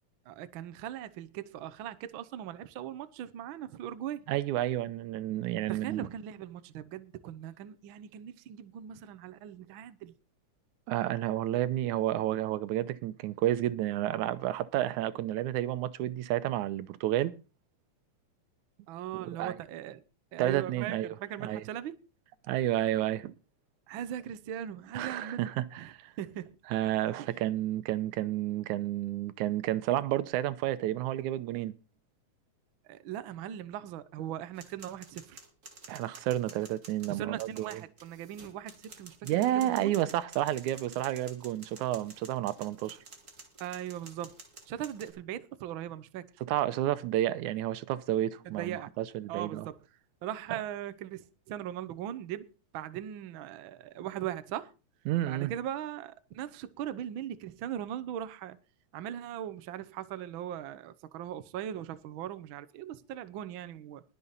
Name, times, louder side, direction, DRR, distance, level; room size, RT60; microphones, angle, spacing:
voice 1, 0.3-4.2 5.7-10.1 18.9-20.0 20.3-22.0 23.9-25.5 25.8-25.9 26.2-26.5 27.2-27.3 32.8-35.4 37.1-39.9 43.6-44.4 44.7-46.3 48.4-48.9 49.3-49.8 50.2-52.5 52.7-54.7 55.2-58.6 58.9-64.0, right 11 dB, 70° right, 1.2 m, -39 dB
voice 2, 4.3-6.0 10.9-17.3 19.2-19.6 20.4-21.1 21.4-21.6 22.5-23.3 24.9-26.1 26.7-31.7 35.9-37.8 39.2-43.0 46.5-49.7 55.1-55.5, right 13 dB, 85° right, 2.2 m, -31 dB
sound 1, 34.5-45.1, right 3 dB, 30° right, 2.0 m, -51 dB
21.0 x 7.0 x 4.1 m
omnidirectional pair, 3.4 m